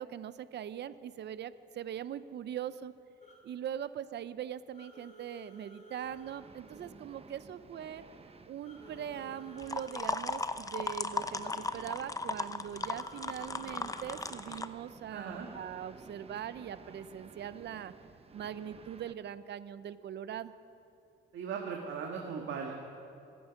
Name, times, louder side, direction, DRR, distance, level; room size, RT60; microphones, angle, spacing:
voice 1, 0.0-2.9 3.4-8.0 8.5-17.9 18.3-20.5, right 9 dB, 60° right, 14 dB, 0.7 m, -41 dB
sound 1, 3.2-3.4 4.7-6.4 8.6-10.0 12.7-14.2, left 1 dB, 35° left, 3.6 m, -54 dB
sound 2, 6.0-19.2, right 4 dB, 30° right, 1.0 m, -54 dB
sound 3, 9.6-14.7, left 3 dB, 15° left, 0.7 m, -36 dB
voice 2, 15.1-15.5 21.3-22.7, right 6 dB, 75° right, 0 dB, 1.7 m, -38 dB
25.0 x 9.5 x 5.9 m, 2.6 s
cardioid pair, 90°, 20 cm